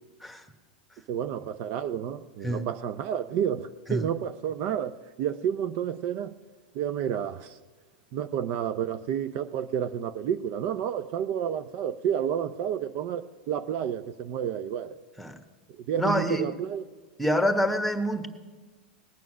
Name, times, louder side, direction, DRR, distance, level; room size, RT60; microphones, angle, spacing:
voice 1, 1.1-6.4 6.7-7.6 8.1-15.0 15.9-16.8, right 9 dB, 50° right, 11 dB, 0.5 m, -30 dB
voice 2, 16.0-16.5 17.2-18.3, equal, ahead, 7 dB, 1.3 m, -26 dB
19.0 x 9.1 x 6.2 m, 1.3 s
hypercardioid pair, 100°, 5 cm